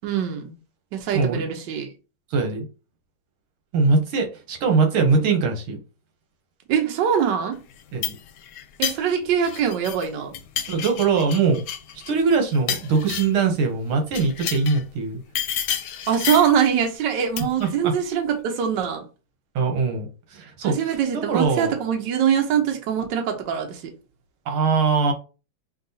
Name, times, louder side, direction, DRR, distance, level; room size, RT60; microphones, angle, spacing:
voice 1, 0.0-0.5 0.9-1.9 6.7-7.6 8.8-10.3 16.1-19.0 20.6-23.8, right 8 dB, 65° right, 1.4 m, -23 dB
voice 2, 1.1-1.5 2.3-2.7 3.7-5.8 7.9-8.1 10.7-11.6 12.1-15.2 17.6-17.9 19.5-21.7 24.5-25.1, right 4 dB, 85° right, 1.8 m, -22 dB
sound 1, 7.7-10.1 10.3-13.5 14.1-14.8 15.3-16.6 17.4-17.7, left 9 dB, 70° left, 1.1 m, -30 dB
6.6 x 2.3 x 2.7 m
omnidirectional pair, 2.3 m